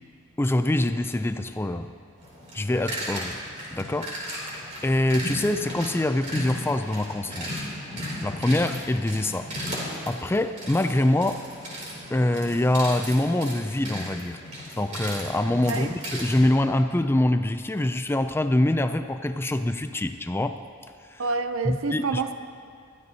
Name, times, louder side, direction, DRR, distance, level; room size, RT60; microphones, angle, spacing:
voice 1, 0.4-1.9 2.5-3.4 3.7-4.1 4.5-7.6 8.2-9.5 9.8-11.4 12.1-14.4 14.8-20.6 21.1-21.2 21.6-22.2, left 1 dB, 10° left, 9 dB, 0.3 m, -25 dB
sound 1, 2.2-16.5, equal, 35° right, 3.0 m, -36 dB
voice 2, 21.2-22.3, right 4 dB, 70° right, 9 dB, 0.6 m, -28 dB
21.5 x 13.0 x 2.8 m, 2.3 s
head